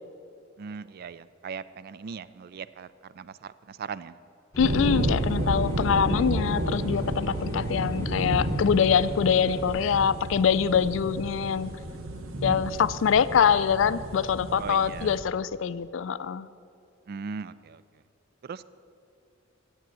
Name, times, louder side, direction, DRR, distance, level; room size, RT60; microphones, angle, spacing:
voice 1, 0.6-4.2 14.6-15.1 17.1-17.8 18.4-18.6, right 5 dB, 50° right, 16 dB, 0.3 m, -39 dB
sound 1, 4.5-9.7, equal, 15° left, 0.9 m, -41 dB
voice 2, 4.6-11.7 12.4-16.5, left 7 dB, 65° left, 16 dB, 0.4 m, -24 dB
sound 2, 4.6-15.2, right 1 dB, 85° right, 1.0 m, -31 dB
11.5 x 8.1 x 7.6 m, 2.5 s
head